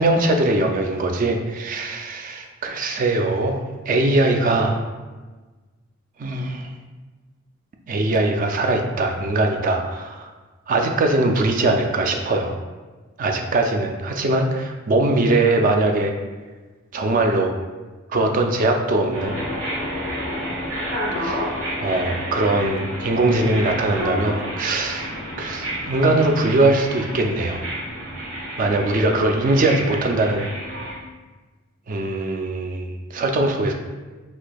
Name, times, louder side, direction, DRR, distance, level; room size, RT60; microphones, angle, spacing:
voice 1, 0.0-4.8 6.2-6.7 7.9-10.3 10.7-12.6 13.2-16.1 16.9-17.5 18.1-19.4 21.2-21.4 21.8-25.1 25.4-27.6 28.6-30.5 31.9-33.7, right 2 dB, 40° right, 4 dB, 0.3 m, -21 dB
sound 1, 19.1-30.9, equal, 75° right, 1.4 m, -30 dB
4.2 x 2.6 x 2.2 m, 1.3 s
head